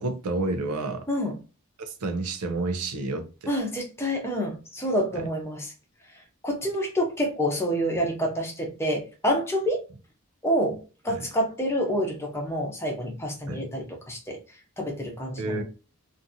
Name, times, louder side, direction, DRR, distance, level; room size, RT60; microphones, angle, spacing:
voice 1, 0.0-1.1 1.8-3.3 5.2-5.3 11.1-11.2 13.5-13.6 15.4-15.6, right 2 dB, 85° right, 0.6 m, -30 dB
voice 2, 3.5-5.7 6.4-9.9 10.4-14.4 14.8-15.6, equal, 10° left, 0.6 m, -28 dB
2.6 x 2.4 x 2.6 m
head